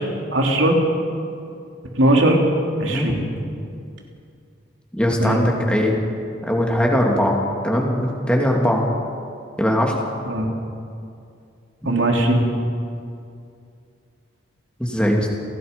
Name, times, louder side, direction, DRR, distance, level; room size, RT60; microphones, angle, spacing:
voice 1, 0.3-0.8 1.9-2.4 2.8-3.2 5.2-5.4 10.3-10.5 11.8-12.4, right 1 dB, 80° right, 1 dB, 3.2 m, -18 dB
voice 2, 2.9-3.2 4.9-5.9 6.4-8.8 9.6-10.0 14.8-15.3, equal, 5° left, -1 dB, 2.8 m, -20 dB
29.5 x 18.0 x 5.4 m, 2.4 s
head